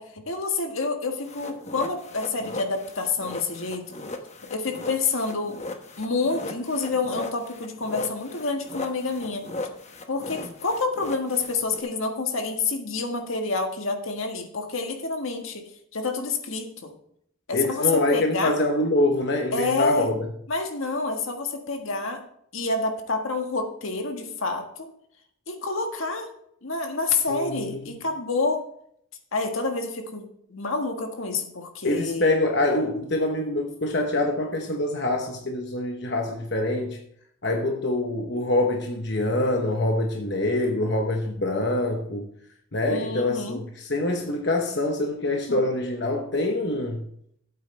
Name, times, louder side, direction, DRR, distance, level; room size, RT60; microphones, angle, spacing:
voice 1, 0.0-3.9 4.5-5.6 6.0-9.4 10.1-15.7 15.9-16.9 17.5-18.6 19.5-20.1 20.5-22.2 22.5-24.9 25.5-26.3 26.6-28.6 29.3-32.3 42.9-43.6 45.5-45.6, left 3 dB, 80° left, 4 dB, 1.6 m, -28 dB
sound 1, 1.2-11.8, left 2 dB, 35° left, 1.0 m, -38 dB
voice 2, 17.5-20.1 27.3-28.0 31.8-37.0 37.4-42.2 42.7-47.1, left 2 dB, 55° left, 2 dB, 1.0 m, -25 dB
13.0 x 8.5 x 3.3 m, 0.69 s
head